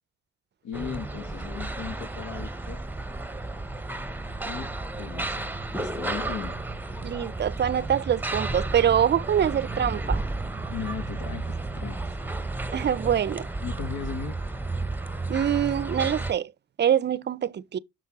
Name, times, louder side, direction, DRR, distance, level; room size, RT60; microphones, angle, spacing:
voice 1, 0.6-2.8 4.4-6.6 10.7-12.2 13.6-14.4, left 7 dB, 70° left, 1.3 m, -37 dB
sound 1, 0.7-16.3, right 2 dB, 5° right, 0.9 m, -32 dB
voice 2, 7.0-10.2 12.7-13.5 15.3-16.5 16.8-17.8, right 9 dB, 35° right, 0.5 m, -24 dB
6.5 x 6.3 x 5.9 m
cardioid pair, 90°, 30 cm